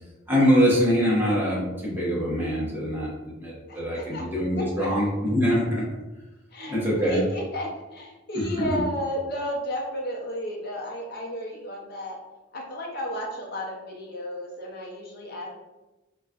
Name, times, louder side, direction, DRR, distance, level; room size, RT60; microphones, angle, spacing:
voice 1, 0.3-5.8 6.7-7.2 8.3-8.8, equal, 10° right, -7 dB, 0.8 m, -24 dB
voice 2, 3.7-4.2 4.6-5.1 6.5-12.2 12.5-15.5, equal, 55° left, -1 dB, 0.7 m, -33 dB
3.9 x 2.3 x 2.3 m, 1.1 s
head